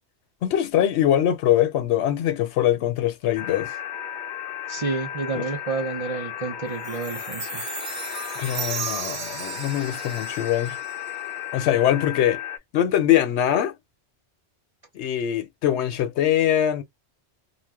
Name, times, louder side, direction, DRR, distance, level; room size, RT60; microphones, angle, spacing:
voice 1, 0.4-3.7 5.3-5.5 8.4-10.8 11.5-12.4 12.7-13.7 14.9-16.8, left 11 dB, 80° left, 0.9 m, -22 dB
sound 1, 3.4-12.6, left 10 dB, 55° left, 0.6 m, -34 dB
voice 2, 4.7-7.6, right 4 dB, 40° right, 0.6 m, -30 dB
Chime, 6.8-11.3, right 7 dB, 80° right, 1.1 m, -35 dB
2.5 x 2.0 x 3.3 m
omnidirectional pair, 1.1 m